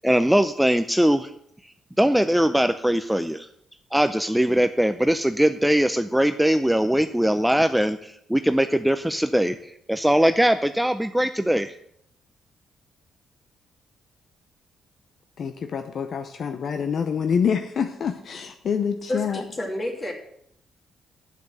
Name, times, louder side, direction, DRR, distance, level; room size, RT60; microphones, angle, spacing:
voice 1, 0.0-1.3 2.0-3.5 3.9-9.6 9.9-11.7, equal, 5° right, 9 dB, 0.5 m, -21 dB
voice 2, 15.4-19.4, left 7 dB, 55° left, 8 dB, 0.7 m, -26 dB
voice 3, 19.1-20.1, left 1 dB, 30° left, 1 dB, 2.7 m, -29 dB
7.6 x 7.4 x 7.6 m, 0.72 s
cardioid pair, 90°, 0 cm